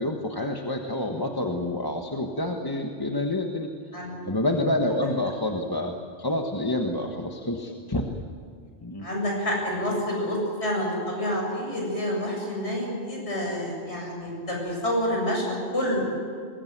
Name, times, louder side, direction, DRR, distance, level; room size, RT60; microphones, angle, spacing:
voice 1, 0.0-3.7 4.2-8.1 8.8-9.1, left 1 dB, 20° left, 2 dB, 1.4 m, -28 dB
voice 2, 9.0-16.0, equal, 75° left, -1 dB, 7.9 m, -28 dB
23.0 x 21.0 x 9.4 m, 2.1 s
omnidirectional pair, 1.1 m